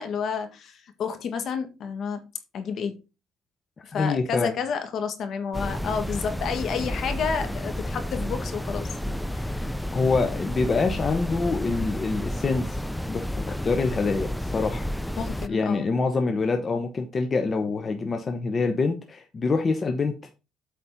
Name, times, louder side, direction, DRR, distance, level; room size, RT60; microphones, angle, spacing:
voice 1, 0.0-2.2 2.5-3.0 3.8-9.7 15.2-15.9, left 6 dB, 55° left, 1.7 m, -30 dB
voice 2, 3.9-4.5 9.9-12.8 13.1-14.9 15.5-20.3, left 4 dB, 30° left, 1.0 m, -25 dB
sound 1, 5.5-15.5, left 1 dB, 5° left, 0.4 m, -31 dB
8.2 x 4.2 x 5.7 m
cardioid pair, 130°, 0 cm